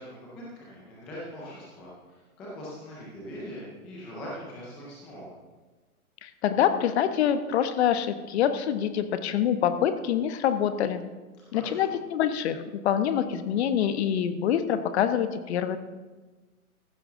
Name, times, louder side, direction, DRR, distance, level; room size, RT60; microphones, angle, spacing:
voice 1, 0.0-5.3 11.5-12.0, equal, 5° left, -6 dB, 0.3 m, -42 dB
voice 2, 6.2-11.0 11.5-15.8, left 9 dB, 45° left, 10 dB, 1.1 m, -25 dB
15.0 x 11.0 x 3.8 m, 1.3 s
hypercardioid pair, 125°, 44 cm